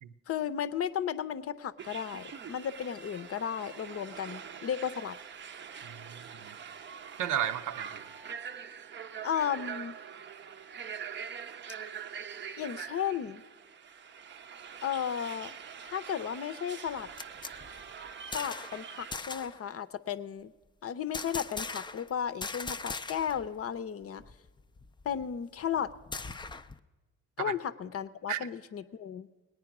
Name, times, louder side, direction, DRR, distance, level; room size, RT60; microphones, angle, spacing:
voice 1, 0.3-5.2 9.2-10.0 12.6-13.4 14.8-15.6 15.8-17.1 18.3-20.5 20.8-24.2 25.0-25.9 27.4-29.3, left 8 dB, 50° left, 11 dB, 0.6 m, -34 dB
sound 1, 1.8-19.1, right 7 dB, 40° right, 0.6 m, -44 dB
voice 2, 5.8-6.6 7.2-8.1 27.4-27.5 28.3-28.5, right 10 dB, 80° right, 10 dB, 0.7 m, -34 dB
sound 2, 16.9-18.8 19.1-19.6 21.1-22.1 22.4-23.5 23.8-23.9 24.2-26.8, left 4 dB, 15° left, 0.4 m, -40 dB
19.0 x 9.1 x 6.0 m, 1.2 s
cardioid pair, 90°, 30 cm